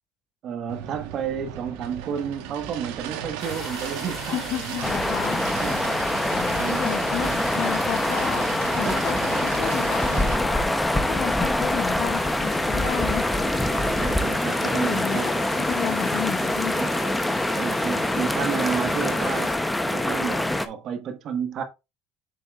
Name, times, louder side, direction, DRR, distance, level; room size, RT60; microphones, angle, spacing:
voice 1, 0.4-4.8 5.5-5.8 6.6-6.9 7.2-7.3 8.8-9.0 9.6-9.9 13.7-15.5 16.6-16.9 17.5-19.5 19.9-21.6, right 7 dB, 50° right, 1.3 m, -31 dB
sound 1, 0.7-10.4, right 10 dB, 90° right, 1.2 m, -36 dB
sound 2, 3.4-19.5, left 3 dB, 30° left, 3.0 m, -38 dB
voice 2, 4.3-5.4 6.3-8.4 8.7-10.7 10.9-13.2 14.5-15.4 15.7-16.8, left 11 dB, 60° left, 0.9 m, -32 dB
sound 3, 4.8-20.7, left 1 dB, 5° left, 0.8 m, -25 dB
7.2 x 6.9 x 2.4 m
cardioid pair, 115°, 0 cm